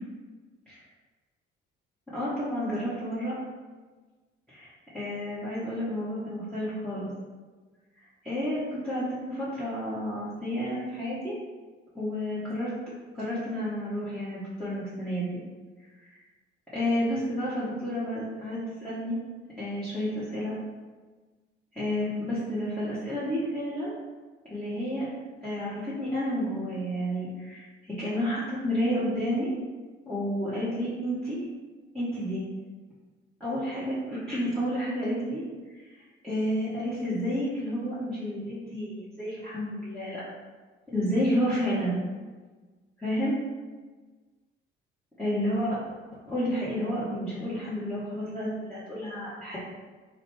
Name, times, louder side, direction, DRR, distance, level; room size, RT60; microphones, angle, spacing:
voice 1, 2.1-3.4 4.5-7.1 8.2-11.3 11.9-12.7 13.1-15.4 16.0-16.1 16.7-19.2 19.6-20.5 21.7-23.9 24.5-25.1 25.4-29.5 30.0-31.4 31.9-32.4 33.4-35.4 35.8-36.0 36.2-40.2 40.9-41.9 43.0-43.3 45.2-45.8 46.3-49.6, equal, 5° left, -12 dB, 1.0 m, -30 dB
2.7 x 2.1 x 3.3 m, 1.3 s
hypercardioid pair, 55°, 29 cm